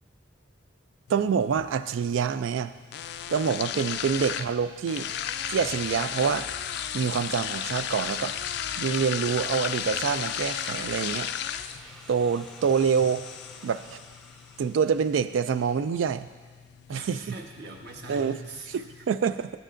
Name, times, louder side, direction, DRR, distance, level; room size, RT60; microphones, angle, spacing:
sound 1, 1.1-19.1, left 9 dB, 60° left, 0.3 m, -35 dB
voice 1, 1.1-2.7 3.3-5.1 5.5-6.5 6.9-8.3 8.8-11.3 12.1-13.3 13.6-14.0 14.6-16.3 16.9-17.2 18.1-18.4 18.7-19.5, right 6 dB, 90° right, 12 dB, 0.3 m, -26 dB
sound 2, 5.1-6.9 7.2-10.0, equal, 25° right, 1.0 m, -54 dB
Drill, 6.1-15.8, equal, ahead, 0.7 m, -51 dB
voice 2, 16.9-19.0, right 2 dB, 60° right, 1 dB, 1.2 m, -43 dB
13.5 x 8.9 x 2.5 m, 1.4 s
head